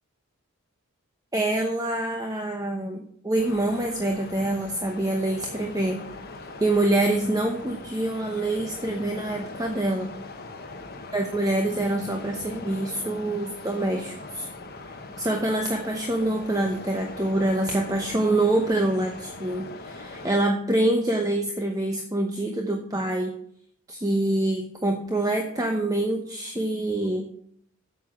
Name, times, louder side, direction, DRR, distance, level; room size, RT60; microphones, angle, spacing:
voice 1, 1.3-6.0 6.6-10.1 11.1-14.5 15.2-23.3 23.9-27.3, right 1 dB, 15° right, 3 dB, 0.9 m, -26 dB
sound 1, 3.4-20.3, left 3 dB, 45° left, 1.2 m, -41 dB
9.0 x 7.8 x 6.1 m, 0.67 s
head